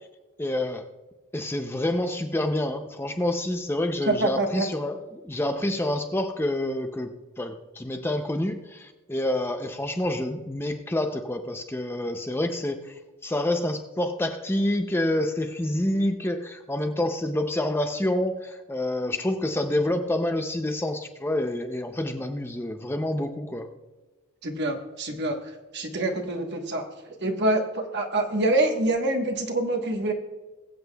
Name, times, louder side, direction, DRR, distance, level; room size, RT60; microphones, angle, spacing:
voice 1, 0.4-0.8 1.3-12.9 13.2-23.7, left 1 dB, 10° left, 6 dB, 0.5 m, -28 dB
voice 2, 4.1-4.7 24.4-25.4 25.7-26.8 27.2-30.1, right 2 dB, 50° right, 3 dB, 1.3 m, -25 dB
21.5 x 7.8 x 2.3 m, 1.2 s
head